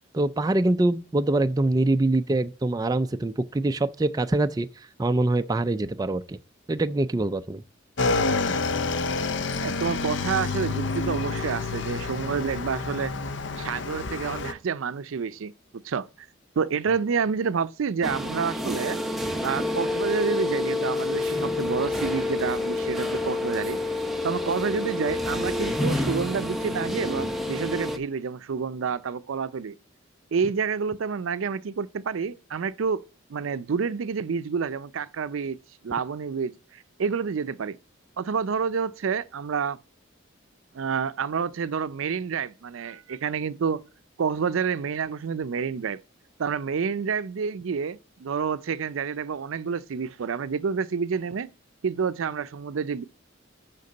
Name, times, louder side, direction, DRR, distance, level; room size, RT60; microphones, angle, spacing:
voice 1, 0.1-4.7 5.0-6.4 6.7-7.6, right 2 dB, 20° right, 0.3 m, -24 dB
Motorcycle / Engine, 8.0-14.5, left 3 dB, 65° left, 0.6 m, -28 dB
voice 2, 9.6-13.2 13.6-16.3 16.6-19.0 19.4-23.8 24.2-29.8 30.3-33.0 33.3-35.6 35.8-37.8 38.2-39.8 40.7-43.8 44.2-46.0 46.4-51.5 51.8-53.0, right 6 dB, 85° right, 0.5 m, -29 dB
sound 1, 18.0-28.0, left 2 dB, ahead, 0.8 m, -28 dB
6.6 x 5.9 x 5.3 m
head